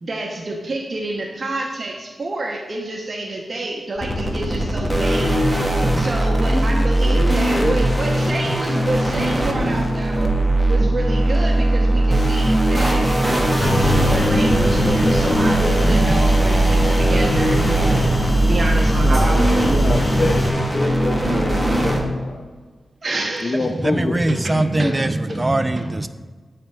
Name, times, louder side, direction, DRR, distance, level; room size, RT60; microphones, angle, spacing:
voice 1, 0.0-5.5 5.8-10.3 10.7-18.1 18.5-20.1 23.0-23.7 24.4-24.5 24.8-24.9, right 2 dB, 50° right, 1 dB, 0.7 m, -28 dB
sound 1, 4.0-22.0, right 1 dB, 5° right, 1.1 m, -19 dB
voice 2, 6.4-7.8 19.0-20.4 20.7-22.5 23.4-25.7, left 2 dB, 50° left, 4 dB, 0.4 m, -27 dB
sound 2, 13.6-20.5, equal, 20° left, 1.0 m, -22 dB
voice 3, 23.7-26.1, right 2 dB, 25° right, 11 dB, 0.4 m, -21 dB
8.3 x 3.3 x 4.5 m, 1.4 s
cardioid pair, 60°, 0 cm